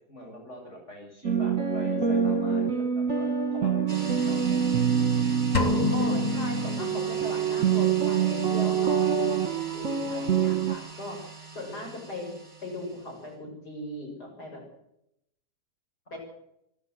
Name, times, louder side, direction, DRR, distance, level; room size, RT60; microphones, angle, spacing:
voice 1, 0.1-4.4 16.1-16.2, equal, 45° left, 1 dB, 7.6 m, -45 dB
sound 1, 1.2-10.8, right 7 dB, 55° right, 2.1 m, -26 dB
sound 2, 3.9-13.2, right 4 dB, 25° right, 6.9 m, -41 dB
sound 3, 5.5-7.6, left 5 dB, 25° left, 1.5 m, -29 dB
voice 2, 5.9-12.3 12.6-14.6 16.1-16.2, left 1 dB, 80° left, 0 dB, 7.7 m, -39 dB
26.5 x 13.0 x 8.0 m, 0.79 s
omnidirectional pair, 1.7 m